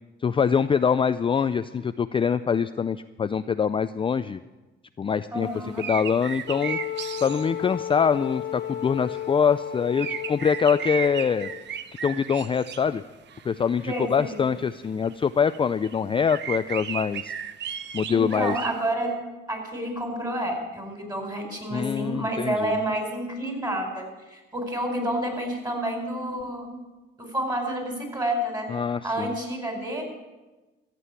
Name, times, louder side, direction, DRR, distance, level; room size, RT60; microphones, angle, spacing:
voice 1, 0.2-4.4 5.0-5.5 5.9-6.8 7.2-11.5 12.0-13.0 13.5-17.3 17.9-18.5 21.7-22.8 28.7-29.4, left 6 dB, 25° left, 11 dB, 0.4 m, -24 dB
voice 2, 5.3-5.9 13.9-14.5 18.1-26.7 27.2-30.0, right 1 dB, 20° right, 3 dB, 4.4 m, -29 dB
sound 1, 5.5-7.5 9.1-9.2 9.9-13.0 13.3-13.9 14.3-14.4 15.1-15.2 15.5-15.6 15.8-16.0 16.3-18.9, right 8 dB, 60° right, 0.8 m, -35 dB
Wind instrument woodwind instrument, 6.5-11.6, left 11 dB, 60° left, 1.6 m, -34 dB
14.5 x 7.7 x 8.2 m, 1.1 s
cardioid pair, 90°, 20 cm